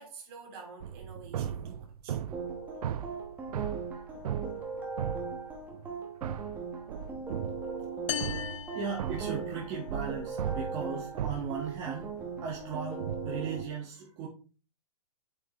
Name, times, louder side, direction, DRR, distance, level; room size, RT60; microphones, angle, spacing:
voice 1, 0.0-2.2, right 4 dB, 40° right, 2.9 m, -48 dB
sound 1, 0.8-6.0 6.2-13.7, right 9 dB, 70° right, 0.5 m, -38 dB
sound 2, 2.3-13.6, right 4 dB, 10° right, 1.0 m, -39 dB
sound 3, 8.1-9.8, left 10 dB, 50° left, 0.4 m, -38 dB
voice 2, 8.7-14.3, right 6 dB, 25° right, 1.5 m, -37 dB
7.7 x 5.4 x 3.1 m
hypercardioid pair, 160°, 20 cm